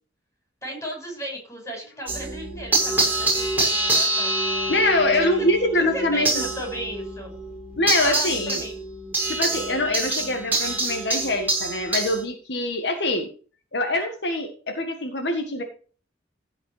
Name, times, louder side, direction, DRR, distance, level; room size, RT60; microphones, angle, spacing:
voice 1, 0.6-4.4 5.7-7.3 8.0-8.8, equal, 15° left, 1 dB, 5.8 m, -35 dB
sound 1, 2.1-12.2, right 2 dB, 10° right, 6.8 m, -26 dB
voice 2, 4.7-6.5 7.8-8.6 9.3-13.3 13.7-15.6, left 1 dB, 70° left, 4 dB, 1.7 m, -24 dB
15.5 x 5.8 x 5.0 m, 0.39 s
head